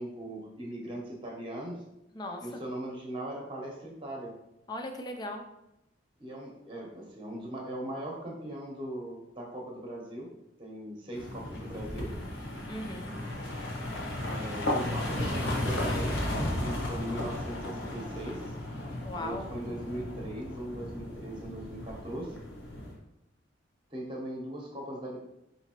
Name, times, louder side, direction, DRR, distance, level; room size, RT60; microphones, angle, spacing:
voice 1, 0.0-1.8 2.4-4.4 6.2-10.3 10.6-12.1 14.2-18.5 19.2-22.4 23.9-25.2, right 1 dB, 25° right, -2 dB, 0.8 m, -39 dB
voice 2, 2.1-2.6 4.7-5.4 12.7-13.1 19.0-19.5, left 1 dB, 20° left, 3 dB, 0.4 m, -38 dB
sound 1, 11.1-23.0, left 1 dB, 80° left, 1.0 m, -34 dB
4.2 x 2.8 x 2.9 m, 0.87 s
head